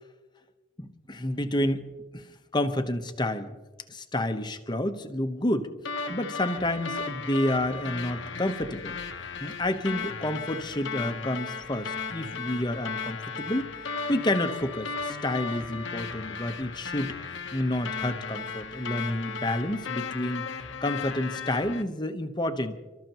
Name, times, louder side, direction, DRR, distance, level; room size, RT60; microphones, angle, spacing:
voice 1, 0.8-1.8 2.1-2.3 2.5-3.5 3.9-5.7 6.1-9.0 9.4-13.7 14.1-17.1 17.5-20.5 20.8-22.7, left 1 dB, 20° left, 7 dB, 1.0 m, -29 dB
sound 1, 5.9-21.8, left 5 dB, 65° left, 1.0 m, -36 dB
29.5 x 13.5 x 3.0 m, 1.2 s
head